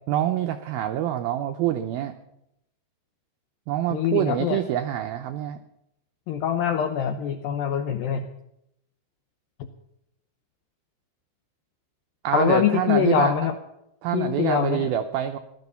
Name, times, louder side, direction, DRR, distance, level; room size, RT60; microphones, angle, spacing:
voice 1, 0.1-2.1 3.7-5.6 12.2-13.3 14.0-15.4, right 11 dB, 90° right, 7 dB, 2.1 m, -26 dB
voice 2, 3.9-4.6 6.3-8.3 12.3-13.6 14.1-14.9, left 9 dB, 80° left, 6 dB, 2.0 m, -24 dB
17.0 x 12.0 x 6.9 m, 0.83 s
omnidirectional pair, 5.2 m